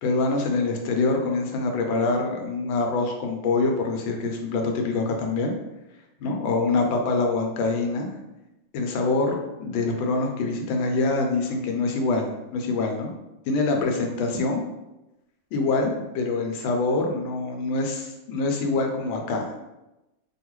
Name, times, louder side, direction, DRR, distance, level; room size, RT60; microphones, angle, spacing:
voice 1, 0.0-5.5 6.2-8.1 8.7-13.1 13.5-14.6 15.5-19.6, left 3 dB, 85° left, 3 dB, 1.4 m, -25 dB
3.4 x 2.3 x 3.0 m, 0.96 s
omnidirectional pair, 2.1 m